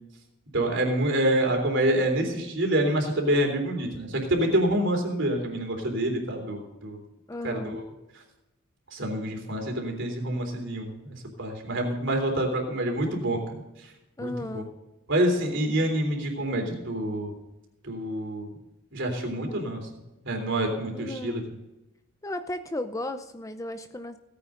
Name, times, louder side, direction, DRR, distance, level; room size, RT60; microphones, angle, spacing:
voice 1, 0.5-7.0 7.4-7.8 8.9-13.4 13.8-13.9 14.2-14.6 15.1-17.3 17.8-18.5 18.9-19.8 20.2-21.4, right 1 dB, 60° right, 2 dB, 3.5 m, -27 dB
voice 2, 7.3-7.8 14.2-14.7 20.9-21.5 22.2-24.2, left 1 dB, 15° left, 9 dB, 0.6 m, -35 dB
17.0 x 9.6 x 3.9 m, 0.99 s
head